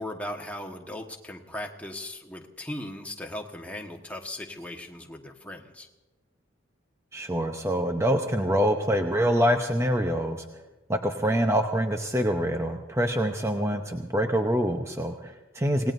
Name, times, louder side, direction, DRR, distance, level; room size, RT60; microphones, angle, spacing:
voice 1, 0.0-5.9 11.2-11.4, left 1 dB, 5° left, 1 dB, 1.3 m, -38 dB
voice 2, 7.1-10.4 10.9-15.9, equal, 15° right, 4 dB, 0.7 m, -25 dB
27.0 x 18.5 x 2.6 m, 1.1 s
head